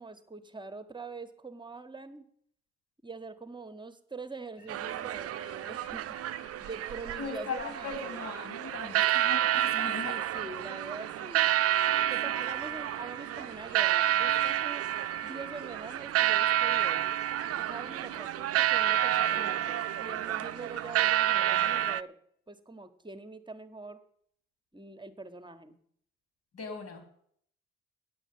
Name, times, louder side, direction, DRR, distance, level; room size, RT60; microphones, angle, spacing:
voice 1, 0.0-2.3 3.0-6.2 6.6-8.3 10.0-11.5 12.1-14.8 15.2-17.1 17.6-22.1 22.5-24.0 24.7-25.8, right 3 dB, 15° right, 9 dB, 1.4 m, -44 dB
sound 1, 4.6-21.0, left 4 dB, 85° left, 3.6 m, -56 dB
sound 2, 4.7-22.0, right 12 dB, 55° right, 0.5 m, -29 dB
voice 2, 7.2-10.1 26.5-27.1, left 4 dB, 55° left, 7 dB, 3.7 m, -39 dB
9.6 x 8.4 x 8.5 m, 0.66 s
hypercardioid pair, 55°, 29 cm